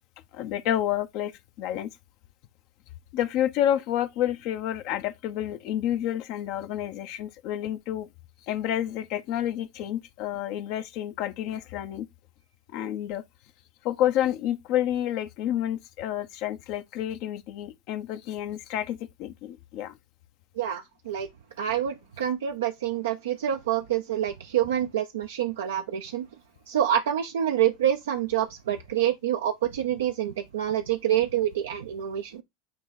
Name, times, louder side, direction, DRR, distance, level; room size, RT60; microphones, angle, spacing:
voice 1, 0.3-1.9 3.1-8.1 8.5-12.1 12.7-13.2 13.8-20.0, left 11 dB, 55° left, 0.7 m, -29 dB
voice 2, 20.6-21.3 21.6-26.3 26.7-32.4, right 10 dB, 75° right, 0.5 m, -27 dB
8.7 x 3.1 x 4.0 m
hypercardioid pair, 80°, 0 cm